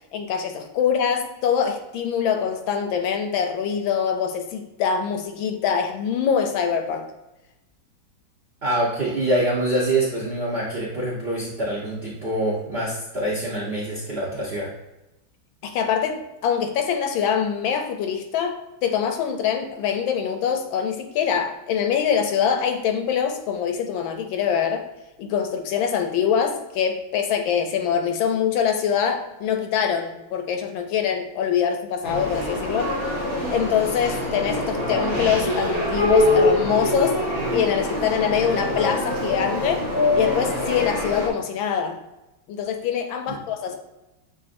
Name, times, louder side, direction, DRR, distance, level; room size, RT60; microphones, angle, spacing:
voice 1, 0.1-7.1 15.6-24.8 25.2-32.9 33.5-37.2 37.5-39.8 40.2-42.0 42.5-43.8, left 7 dB, 75° left, 5 dB, 1.3 m, -24 dB
voice 2, 8.6-14.7 43.3-43.4, right 1 dB, 60° right, -6 dB, 0.6 m, -25 dB
sound 1, 32.0-41.3, left 1 dB, 35° left, 0.4 m, -24 dB
6.5 x 2.4 x 2.5 m, 0.98 s
omnidirectional pair, 2.2 m